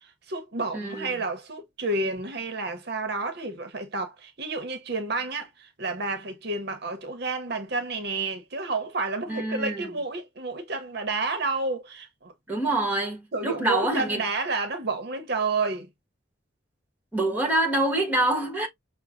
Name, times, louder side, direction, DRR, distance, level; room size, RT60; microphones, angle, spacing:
voice 1, 0.0-12.3 13.3-15.9, right 3 dB, 60° right, 0.8 m, -30 dB
voice 2, 0.7-1.2 9.3-9.9 12.5-14.2 17.1-18.7, right 1 dB, 10° right, 1.4 m, -26 dB
6.0 x 2.1 x 2.5 m
head